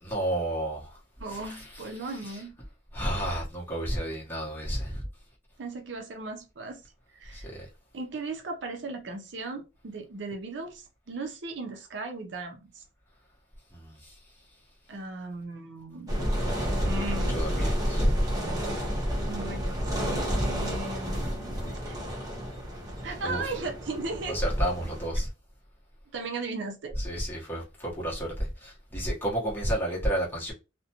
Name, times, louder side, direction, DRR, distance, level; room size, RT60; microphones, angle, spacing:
voice 1, 0.0-1.0 1.2-2.5 2.9-5.0 7.3-7.7 13.7-14.1 16.4-18.1 20.1-20.7 23.2-23.6 24.3-25.3 26.9-30.5, right 1 dB, 10° left, 0.9 m, -32 dB
voice 2, 1.2-2.5 5.6-6.8 7.1-7.5 7.9-12.8 14.9-16.2 16.8-17.4 19.2-22.0 23.0-24.4 26.1-27.0, right 3 dB, 65° right, 0.5 m, -37 dB
sound 1, 16.1-25.1, equal, 20° right, 0.7 m, -30 dB
2.5 x 2.1 x 2.8 m
head